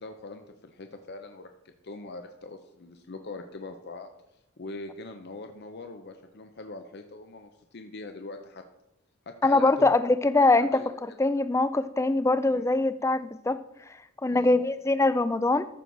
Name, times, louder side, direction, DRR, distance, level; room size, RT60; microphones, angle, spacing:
voice 1, 0.0-8.6 9.3-9.9 10.6-10.9 12.5-12.7 14.3-14.5, left 2 dB, 50° left, 6 dB, 0.6 m, -42 dB
voice 2, 9.4-10.8 11.2-13.6 14.2-15.7, left 2 dB, 15° left, 13 dB, 0.3 m, -23 dB
14.0 x 6.2 x 3.9 m, 0.85 s
head